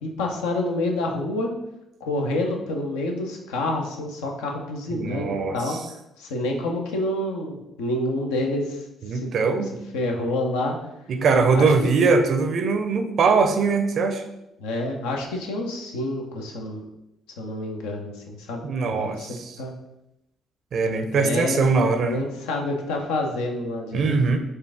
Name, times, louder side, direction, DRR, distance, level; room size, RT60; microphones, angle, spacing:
voice 1, 0.0-1.5 2.0-5.8 6.2-8.8 9.1-9.3 9.9-10.8 11.6-11.7 14.6-16.8 17.4-19.8 21.1-24.2, left 1 dB, 80° left, 1 dB, 0.6 m, -28 dB
voice 2, 5.0-5.8 9.0-9.7 11.1-14.2 18.6-19.6 20.7-22.2 23.9-24.4, right 4 dB, 55° right, 6 dB, 0.5 m, -21 dB
4.5 x 2.5 x 3.4 m, 0.87 s
hypercardioid pair, 45°, 0 cm